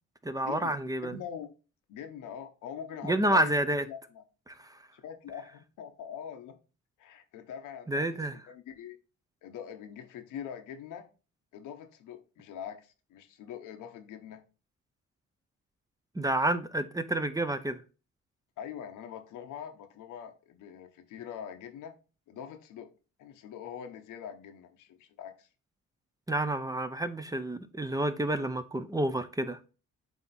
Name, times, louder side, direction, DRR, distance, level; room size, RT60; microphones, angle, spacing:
voice 1, 0.2-1.2 3.0-3.8 4.5-4.7 7.9-8.3 16.2-17.8 26.3-29.6, right 1 dB, 10° right, 0.6 m, -29 dB
voice 2, 1.0-1.5 1.9-3.6 3.9-4.2 4.9-6.6 7.0-8.2 8.5-9.0 9.4-11.1 11.5-14.4 18.6-21.9 22.3-22.9 23.2-25.5, left 8 dB, 90° left, 1.0 m, -43 dB
8.2 x 2.9 x 4.2 m
cardioid pair, 90°, 30 cm